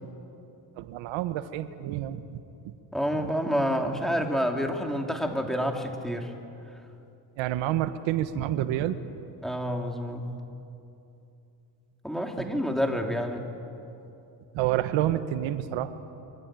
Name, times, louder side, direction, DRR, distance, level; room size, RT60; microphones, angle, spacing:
voice 1, 0.8-2.4 7.4-9.0 12.4-12.6 14.5-15.9, right 12 dB, 90° right, 11 dB, 1.3 m, -28 dB
voice 2, 2.9-6.3 9.4-10.3 12.0-13.5, equal, ahead, 3 dB, 3.2 m, -28 dB
25.0 x 24.5 x 9.2 m, 2.7 s
cardioid pair, 100°, 45 cm